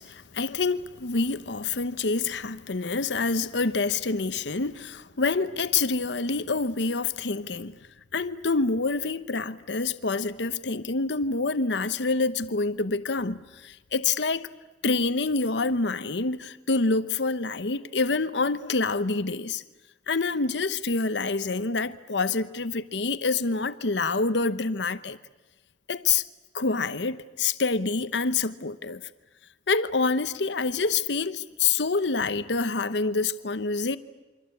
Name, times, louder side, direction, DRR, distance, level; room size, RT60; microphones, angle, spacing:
voice 1, 0.0-7.8 8.1-14.5 14.8-19.6 20.1-25.2 25.9-26.2 26.5-29.0 29.7-34.0, left 4 dB, 70° left, 0.9 m, -27 dB
29.0 x 24.5 x 8.4 m
head